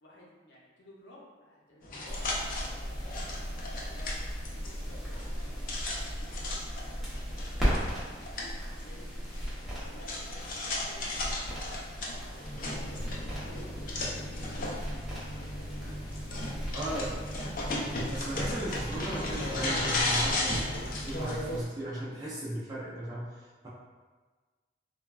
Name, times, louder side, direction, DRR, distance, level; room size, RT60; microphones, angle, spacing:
voice 1, 0.0-3.4 3.8-6.8 7.8-8.2 8.8-12.5 13.2-14.9 15.3-16.0 16.5-17.2, left 1 dB, 90° left, -3 dB, 0.7 m, -55 dB
sound 1, 1.8-21.6, left 1 dB, 50° left, 0.4 m, -36 dB
sound 2, 2.1-21.6, equal, ahead, 0.8 m, -38 dB
voice 2, 16.7-17.1 18.1-23.7, right 1 dB, 20° right, -8 dB, 0.4 m, -37 dB
3.1 x 2.2 x 2.3 m, 1.4 s
head